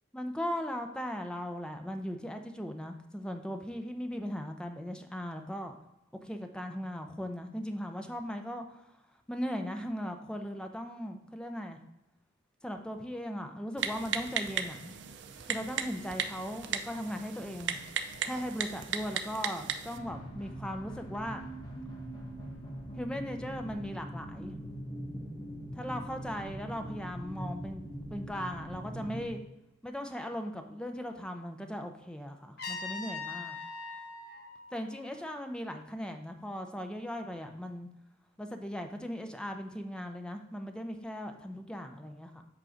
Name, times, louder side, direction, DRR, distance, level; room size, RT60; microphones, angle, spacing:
voice 1, 0.1-5.7 6.2-8.8 9.3-11.8 12.6-14.9 15.5-17.8 18.2-21.5 23.0-24.6 25.7-27.8 28.1-29.4 29.8-33.6 34.7-37.9 38.4-42.4, equal, 5° left, 5 dB, 0.6 m, -38 dB
Typing, 13.8-20.0, right 7 dB, 80° right, 0.5 m, -36 dB
sound 1, 19.9-29.3, equal, 25° left, 1.3 m, -42 dB
Trumpet, 32.6-35.5, left 4 dB, 60° left, 1.3 m, -42 dB
7.6 x 3.7 x 5.1 m, 0.93 s
head